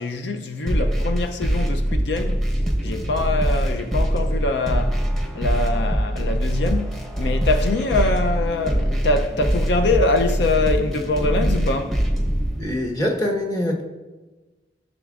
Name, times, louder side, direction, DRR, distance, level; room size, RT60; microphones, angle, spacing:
voice 1, 0.0-2.4 2.8-5.0 5.4-12.0, left 2 dB, 75° left, 0.5 m, -24 dB
sound 1, 0.7-12.7, equal, ahead, 1.0 m, -23 dB
voice 2, 12.6-13.8, left 1 dB, 20° left, 1.2 m, -24 dB
14.0 x 6.1 x 2.5 m
head